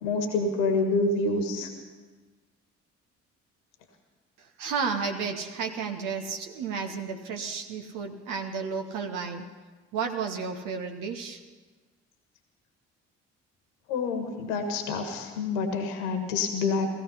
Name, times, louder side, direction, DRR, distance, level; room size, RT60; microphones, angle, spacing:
voice 1, 0.0-1.7 13.9-16.9, left 3 dB, 70° left, 5 dB, 1.5 m, -27 dB
voice 2, 4.6-9.5 9.9-11.4, right 5 dB, 60° right, 5 dB, 1.0 m, -32 dB
17.0 x 15.0 x 5.6 m, 1.3 s
figure-of-eight pair, 45°, 36 cm